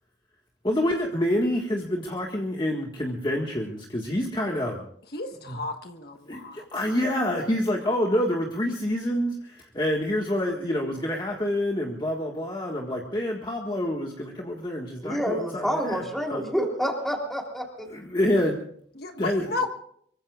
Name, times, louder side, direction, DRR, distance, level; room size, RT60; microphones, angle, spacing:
voice 1, 0.6-4.8 5.4-5.6 6.3-6.4 6.7-9.3 9.7-16.0 16.3-16.4 17.9-18.6 19.2-19.5, left 1 dB, 25° left, 0 dB, 1.7 m, -27 dB
voice 2, 5.1-6.7 19.0-19.7, left 3 dB, 60° left, 5 dB, 1.5 m, -33 dB
voice 3, 15.0-17.9, equal, ahead, 1 dB, 3.4 m, -28 dB
24.0 x 23.5 x 2.5 m, 0.65 s
head